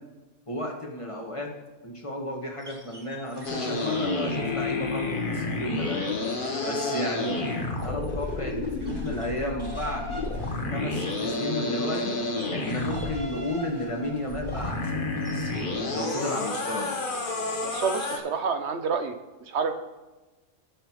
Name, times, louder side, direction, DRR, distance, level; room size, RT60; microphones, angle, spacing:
voice 1, 0.5-1.5 1.8-6.1 6.6-7.4 7.8-10.1 10.7-12.2 12.5-15.5 15.9-16.9, left 1 dB, 25° left, 0 dB, 1.6 m, -33 dB
sound 1, 2.6-5.2 5.5-15.8, left 1 dB, 20° right, 1.4 m, -42 dB
sound 2, 3.4-13.2 14.2-18.2, left 2 dB, 45° left, 1.2 m, -30 dB
voice 2, 17.6-19.2 19.5-19.7, right 5 dB, 70° right, 7 dB, 1.0 m, -28 dB
18.0 x 6.6 x 3.1 m, 1.1 s
omnidirectional pair, 1.3 m